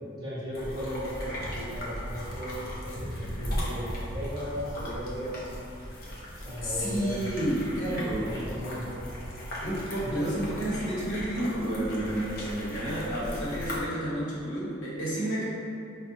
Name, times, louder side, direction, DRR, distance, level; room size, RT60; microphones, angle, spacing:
voice 1, 0.1-5.5 6.4-7.2 7.7-7.9 8.2-9.0, equal, 20° right, -10 dB, 0.9 m, -36 dB
sound 1, 0.5-13.8, equal, 50° left, 0.7 m, -37 dB
voice 2, 6.6-8.4 9.6-15.4, right 1 dB, 70° left, -7 dB, 1.0 m, -30 dB
4.8 x 2.2 x 2.7 m, 2.6 s
head